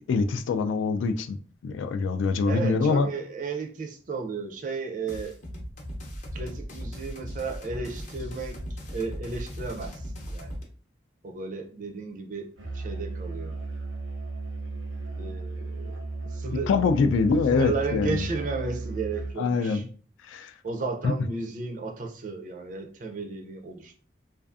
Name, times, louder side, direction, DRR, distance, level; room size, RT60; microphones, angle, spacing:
voice 1, 0.1-1.4 1.6-3.1 16.7-18.2 19.4-19.8 20.3-20.5 21.0-21.1, left 4 dB, 85° left, 0.3 m, -24 dB
voice 2, 2.5-5.4 6.3-10.6 11.2-13.6 15.2-17.0 17.5-19.8 20.6-24.0, right 4 dB, 40° right, 0.4 m, -34 dB
sound 1, 5.1-10.6, equal, 40° left, 0.6 m, -37 dB
Musical instrument, 12.6-19.5, right 3 dB, 90° right, 0.7 m, -35 dB
2.5 x 2.4 x 2.4 m
head